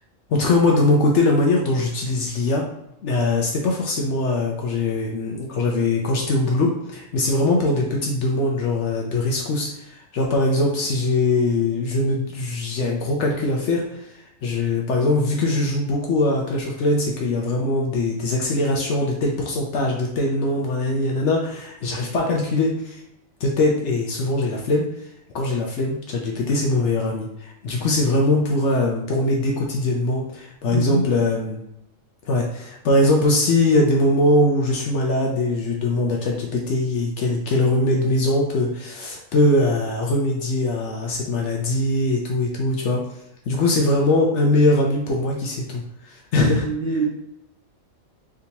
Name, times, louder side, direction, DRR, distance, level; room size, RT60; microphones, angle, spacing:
voice 1, 0.3-2.7 3.0-14.1 14.4-23.0 23.4-24.9 25.3-31.6 32.2-43.0 43.5-46.7, left 2 dB, 65° left, 0 dB, 0.8 m, -21 dB
voice 2, 30.7-31.1 46.4-47.1, right 2 dB, 45° right, -6 dB, 1.0 m, -24 dB
3.5 x 2.8 x 2.7 m, 0.80 s
omnidirectional pair, 1.4 m